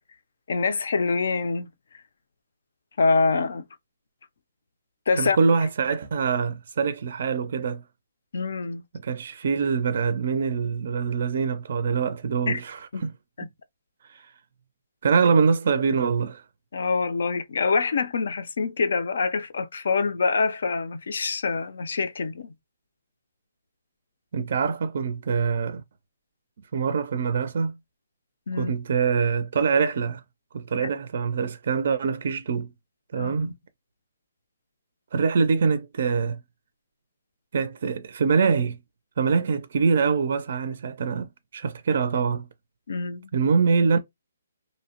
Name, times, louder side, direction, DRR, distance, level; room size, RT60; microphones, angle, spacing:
voice 1, 0.5-1.7 3.0-3.6 5.1-5.4 8.3-8.8 12.5-12.6 12.9-13.0 13.4-13.5 16.7-22.5 28.5-28.7 30.8-30.9 33.2-33.5 42.9-43.3, left 4 dB, 65° left, 0.5 m, -25 dB
voice 2, 5.2-7.8 8.9-13.1 14.1-14.2 15.0-16.4 24.3-25.8 26.7-27.8 28.6-30.2 30.5-32.7 33.1-33.5 35.1-36.4 37.5-38.8 39.2-42.5 43.3-44.0, right 5 dB, 50° right, 0.4 m, -24 dB
2.6 x 2.0 x 2.9 m
hypercardioid pair, 165°, 0 cm